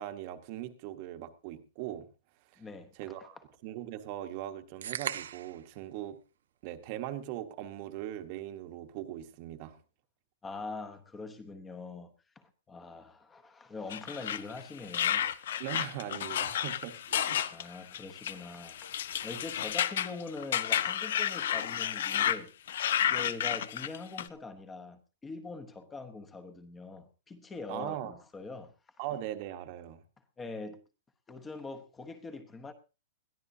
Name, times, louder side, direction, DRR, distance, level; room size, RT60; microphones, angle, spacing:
voice 1, 0.0-2.1 2.5-2.6 3.0-3.4 3.6-6.2 6.6-9.8 15.6-17.7 27.7-28.2 29.0-30.0, right 12 dB, 35° right, 1.2 m, -40 dB
voice 2, 2.6-3.3 10.4-15.3 17.5-22.5 23.0-28.7 30.4-30.8 31.3-32.7, left 3 dB, 10° left, 1.0 m, -43 dB
sound 1, 4.8-5.6, right 9 dB, 85° right, 0.8 m, -36 dB
sound 2, 13.9-22.4 22.7-24.3, left 10 dB, 60° left, 0.7 m, -31 dB
21.0 x 13.5 x 2.8 m
supercardioid pair, 170°, 0 cm